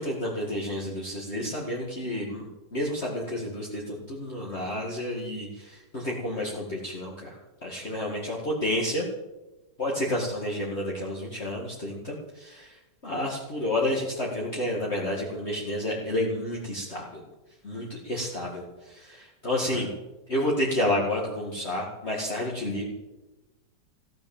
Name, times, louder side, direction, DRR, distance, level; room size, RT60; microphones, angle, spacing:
voice 1, 0.0-7.3 7.6-9.1 9.8-12.8 13.0-17.2 17.6-19.9 20.3-22.8, left 1 dB, 40° left, -4 dB, 2.6 m, -30 dB
15.5 x 12.0 x 7.3 m, 1.1 s
omnidirectional pair, 1.9 m